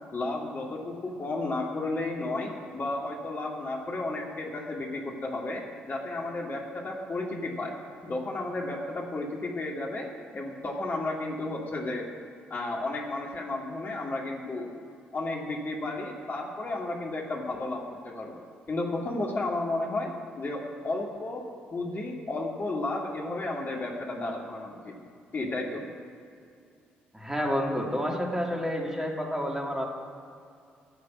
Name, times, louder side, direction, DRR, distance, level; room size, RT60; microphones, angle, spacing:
voice 1, 0.1-7.7 8.0-10.1 10.3-12.1 12.5-14.7 15.1-18.4 18.7-20.1 20.4-21.4 21.7-25.0 25.3-25.8, left 2 dB, 35° left, -1 dB, 2.2 m, -33 dB
voice 2, 27.1-29.8, equal, 5° right, -1 dB, 2.7 m, -29 dB
14.0 x 6.6 x 8.4 m, 2.4 s
figure-of-eight pair, 40°, 5 cm